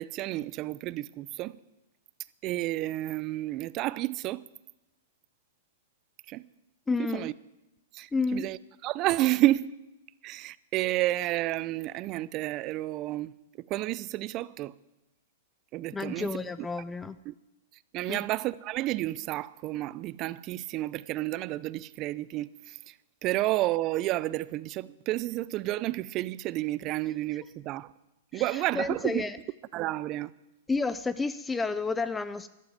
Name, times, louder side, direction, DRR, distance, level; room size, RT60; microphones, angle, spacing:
voice 1, 0.0-1.6 2.4-4.5 6.3-6.5 7.0-7.3 7.9-8.6 8.8-9.7 10.2-14.8 15.7-16.4 17.3-17.4 17.9-22.9 23.2-27.9 28.3-29.2 29.7-30.3, right 16 dB, 35° right, 0.6 m, -30 dB
voice 2, 6.9-7.3 8.1-8.5 15.9-17.2 18.1-18.2 28.3-29.4 30.7-32.5, left 4 dB, 10° left, 0.5 m, -31 dB
12.0 x 12.0 x 9.3 m
hypercardioid pair, 130°, 0 cm